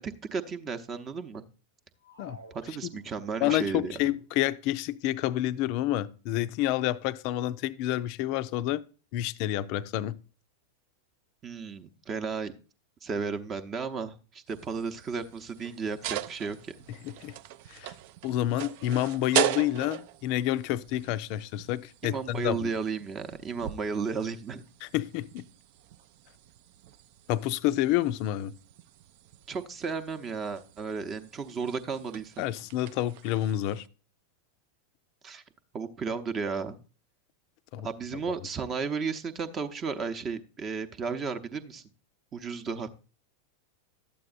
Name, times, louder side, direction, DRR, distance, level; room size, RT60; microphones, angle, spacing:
voice 1, 0.0-1.4 2.5-3.9 11.4-12.5 13.0-16.7 22.0-24.6 29.5-32.4 35.2-35.4 35.7-36.8 37.8-41.8 42.3-42.9, right 5 dB, 25° right, 0.8 m, -34 dB
sound 1, 2.0-3.5, right 2 dB, 85° right, 1.5 m, -52 dB
voice 2, 3.4-8.8 9.1-10.2 17.0-17.4 17.7-17.9 18.2-22.7 24.8-25.4 27.3-28.5 32.4-33.8 37.7-37.9, left 14 dB, 45° left, 0.4 m, -29 dB
sound 2, 14.5-33.9, right 12 dB, 50° right, 0.4 m, -39 dB
12.0 x 8.5 x 2.5 m
figure-of-eight pair, 90°, 0 cm